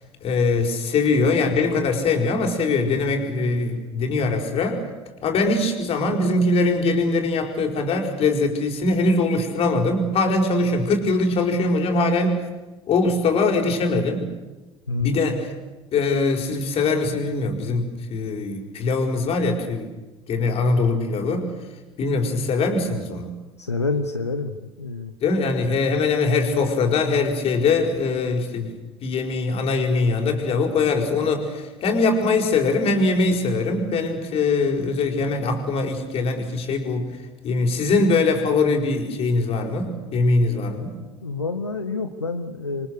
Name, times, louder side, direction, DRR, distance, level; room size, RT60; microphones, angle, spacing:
voice 1, 0.2-4.8 5.2-12.4 12.9-14.3 15.0-15.5 15.9-19.9 20.3-21.5 22.0-23.3 25.2-37.1 37.4-41.0, left 3 dB, 45° left, 4 dB, 5.0 m, -22 dB
voice 2, 23.6-25.1 41.2-42.9, left 3 dB, 90° left, 7 dB, 1.1 m, -28 dB
27.5 x 24.0 x 6.7 m, 1.2 s
figure-of-eight pair, 65°, 14 cm